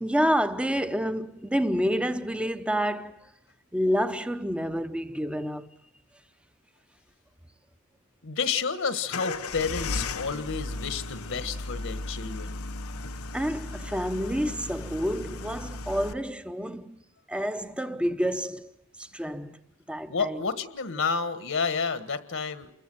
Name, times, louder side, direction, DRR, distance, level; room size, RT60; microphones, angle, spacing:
voice 1, 0.0-3.2 3.7-5.7 13.3-17.0 17.3-18.7 19.0-19.6 19.9-20.4, equal, 5° right, 0.9 m, -28 dB
voice 2, 8.2-12.6 20.1-22.7, left 5 dB, 65° left, 1.4 m, -30 dB
sound 1, 9.1-16.1, left 2 dB, 85° left, 1.1 m, -35 dB
29.0 x 22.0 x 7.8 m
head